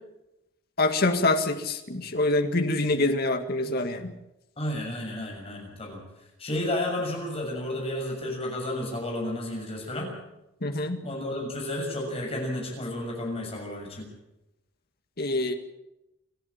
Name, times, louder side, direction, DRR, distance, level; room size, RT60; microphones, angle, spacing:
voice 1, 0.8-4.1 10.6-11.0 15.2-15.5, left 2 dB, 55° left, 6 dB, 1.9 m, -25 dB
voice 2, 4.6-6.1 6.4-10.1 11.0-14.1, left 1 dB, 30° left, -1 dB, 6.8 m, -32 dB
28.5 x 11.0 x 8.7 m, 0.92 s
head